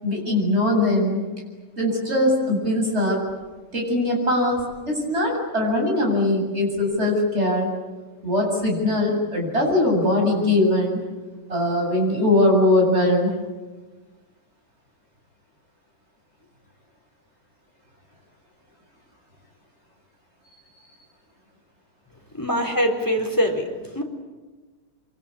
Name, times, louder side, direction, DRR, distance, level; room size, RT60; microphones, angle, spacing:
voice 1, 0.0-1.2 1.8-3.2 3.7-7.7 8.2-11.0 11.5-13.3, left 1 dB, 40° right, 0 dB, 8.3 m, -21 dB
voice 2, 22.4-23.6 24.0-24.1, equal, 10° left, 3 dB, 3.9 m, -22 dB
27.0 x 25.5 x 8.7 m, 1.3 s
omnidirectional pair, 1.8 m